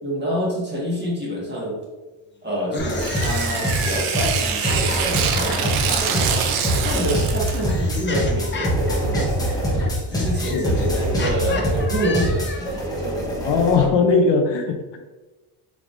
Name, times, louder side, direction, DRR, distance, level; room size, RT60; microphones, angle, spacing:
voice 1, 0.0-1.8 2.4-6.2 6.6-9.6 10.1-13.8, equal, 20° right, -5 dB, 1.5 m, -27 dB
sound 1, 2.6-5.9 6.9-12.8, left 3 dB, 25° left, 0.6 m, -33 dB
sound 2, 2.8-13.9, equal, 10° left, 0.9 m, -24 dB
Tearing, 2.9-7.7, right 7 dB, 90° right, 0.7 m, -25 dB
voice 2, 10.4-11.1 13.5-15.0, left 4 dB, 60° left, 4 dB, 0.6 m, -20 dB
4.7 x 3.4 x 2.5 m, 1.2 s
cardioid pair, 125°, 48 cm